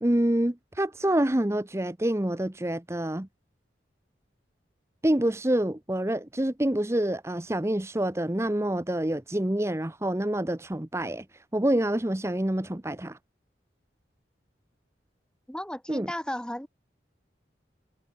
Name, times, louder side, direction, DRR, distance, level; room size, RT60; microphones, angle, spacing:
voice 1, 0.0-3.3 5.0-13.2 15.9-16.1, right 1 dB, 15° right, 0.8 m, -27 dB
voice 2, 15.5-16.7, left 1 dB, 5° left, 1.7 m, -34 dB
head